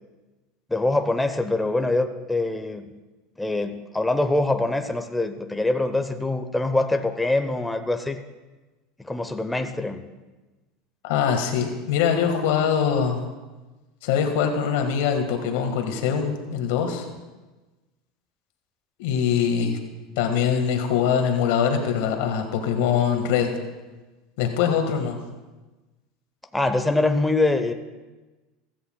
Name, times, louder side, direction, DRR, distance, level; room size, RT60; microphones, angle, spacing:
voice 1, 0.7-2.9 3.4-8.2 9.0-10.0 26.5-27.7, left 2 dB, 10° left, 7 dB, 0.8 m, -24 dB
voice 2, 11.0-13.2 14.0-17.1 19.0-19.8 20.2-23.5 24.4-25.2, left 7 dB, 70° left, 4 dB, 1.7 m, -23 dB
15.5 x 14.0 x 2.3 m, 1.2 s
hypercardioid pair, 90°, 0 cm